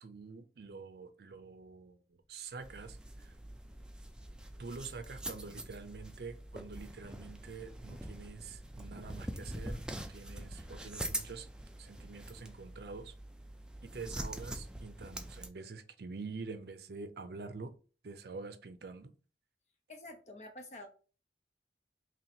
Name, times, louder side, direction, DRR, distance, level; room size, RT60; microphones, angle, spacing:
voice 1, 0.0-2.0 2.3-3.3 4.6-11.5 11.8-13.1 13.8-17.7 18.0-19.1, right 4 dB, 65° right, 0.5 m, -46 dB
sound 1, 2.2-11.7, equal, 70° left, 1.3 m, -57 dB
sound 2, 2.6-15.5, right 1 dB, 5° right, 0.3 m, -44 dB
voice 2, 19.9-20.9, left 1 dB, 40° left, 0.7 m, -48 dB
3.1 x 2.8 x 4.2 m
head